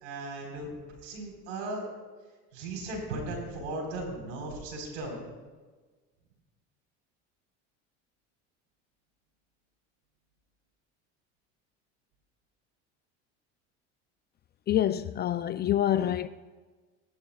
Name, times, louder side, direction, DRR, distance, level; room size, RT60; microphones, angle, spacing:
voice 1, 0.0-1.9 2.5-5.2, right 2 dB, 85° right, 4.1 m, -37 dB
voice 2, 14.7-16.3, left 11 dB, 30° left, 0.3 m, -26 dB
18.5 x 11.5 x 2.3 m
supercardioid pair, 95°, 35 cm